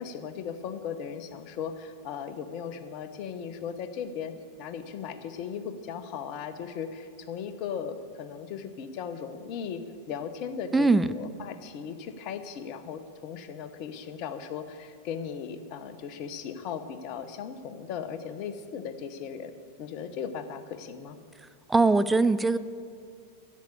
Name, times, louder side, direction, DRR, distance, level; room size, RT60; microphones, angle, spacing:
voice 1, 0.0-19.5 19.8-21.2, left 7 dB, 40° left, 10 dB, 0.9 m, -37 dB
voice 2, 10.7-11.1 21.4-22.6, right 3 dB, 10° right, 13 dB, 0.4 m, -22 dB
10.5 x 8.2 x 8.5 m, 2.2 s
figure-of-eight pair, 90°, 0 cm